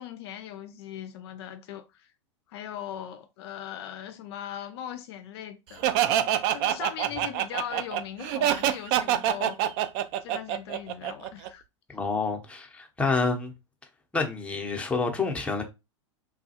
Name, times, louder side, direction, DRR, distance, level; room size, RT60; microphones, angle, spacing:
voice 1, 0.0-2.1 2.5-6.2 6.5-9.6 10.2-11.6, left 10 dB, 55° left, 0.4 m, -39 dB
Laughter, 5.8-11.5, right 11 dB, 45° right, 0.4 m, -25 dB
voice 2, 11.9-13.5 14.1-15.6, left 4 dB, 5° left, 0.7 m, -28 dB
3.1 x 2.2 x 2.8 m
hypercardioid pair, 100°, 16 cm